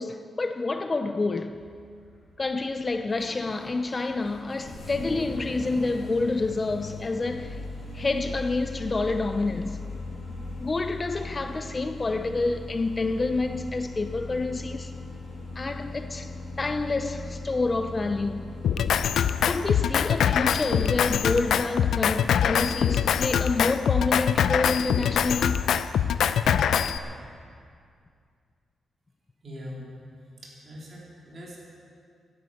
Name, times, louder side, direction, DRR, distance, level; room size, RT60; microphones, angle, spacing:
voice 1, 0.0-1.6 2.4-7.6 7.9-9.8 10.6-14.9 15.6-16.3 16.6-18.5 19.4-25.6, left 3 dB, 25° left, 0.5 m, -28 dB
Engine starting, 1.5-19.9, left 2 dB, 50° left, 4.8 m, -39 dB
Drum kit, 18.6-27.0, left 8 dB, 85° left, 0.5 m, -24 dB
voice 2, 29.4-29.8 30.4-31.6, equal, 40° right, 4.0 m, -41 dB
12.0 x 12.0 x 8.4 m
wide cardioid pair, 145°, 0 cm